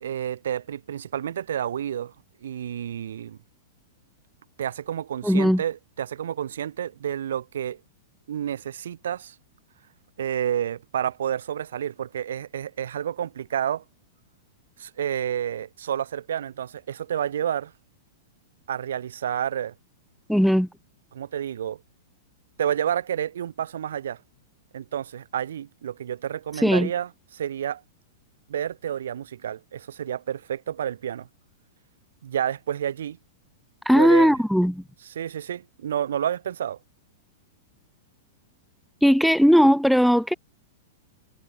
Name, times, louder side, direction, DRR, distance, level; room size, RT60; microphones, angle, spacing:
voice 1, 0.0-2.1 2.4-3.4 4.6-7.8 8.3-9.4 10.2-13.8 14.8-17.7 18.7-19.7 21.1-21.8 22.6-24.2 24.7-27.8 28.5-31.3 32.2-33.2 33.9-34.3 35.2-36.8, right 9 dB, 75° right, 2.2 m, -30 dB
voice 2, 5.2-5.6 20.3-20.7 26.6-26.9 33.9-34.8 39.0-40.3, equal, ahead, 0.8 m, -18 dB
hypercardioid pair, 115°, 0 cm